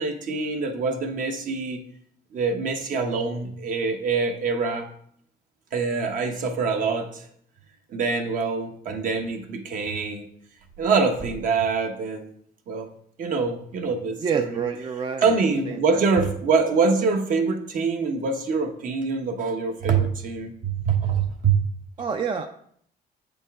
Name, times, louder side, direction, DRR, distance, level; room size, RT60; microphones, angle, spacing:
voice 1, 0.0-1.8 2.3-4.9 5.7-7.3 7.9-10.3 10.8-12.3 12.7-12.9 13.2-14.6 15.2-21.6, right 4 dB, 50° right, 4 dB, 1.1 m, -24 dB
voice 2, 14.2-15.8 22.0-22.5, right 6 dB, 30° right, 6 dB, 0.5 m, -28 dB
7.9 x 5.3 x 3.6 m, 0.65 s
cardioid pair, 110°, 17 cm